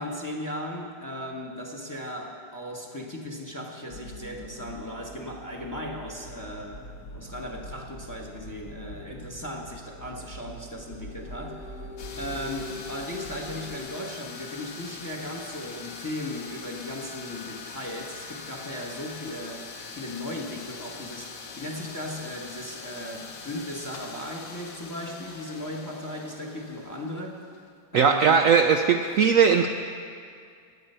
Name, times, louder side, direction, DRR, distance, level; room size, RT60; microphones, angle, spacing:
voice 1, 0.0-6.8 7.1-11.9 12.2-19.7 19.9-27.4 27.9-28.5, left 1 dB, 15° left, 1 dB, 0.9 m, -37 dB
sound 1, 3.9-13.8, left 1 dB, 60° left, 1.8 m, -42 dB
sound 2, 12.0-27.7, left 4 dB, 85° left, 1.8 m, -42 dB
voice 2, 27.9-29.7, right 6 dB, 85° right, 6 dB, 0.7 m, -19 dB
19.0 x 8.7 x 5.6 m, 2.3 s
omnidirectional pair, 2.0 m